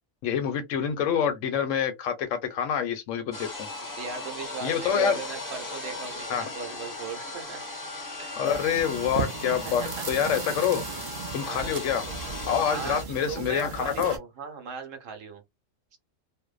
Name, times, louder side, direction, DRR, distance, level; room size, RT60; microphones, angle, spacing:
voice 1, 0.2-3.7 4.6-5.2 6.3-6.5 8.4-10.8 11.3-12.0 12.5-14.2, left 8 dB, 75° left, 0.9 m, -27 dB
sound 1, 3.3-13.0, left 2 dB, 25° left, 0.5 m, -37 dB
voice 2, 3.9-7.7 8.2-8.4 9.4-10.1 11.4-11.7 12.7-13.0 13.3-15.4, right 6 dB, 75° right, 1.1 m, -38 dB
sound 2, 8.4-14.2, right 6 dB, 50° right, 0.6 m, -36 dB
2.5 x 2.1 x 2.3 m
omnidirectional pair, 1.4 m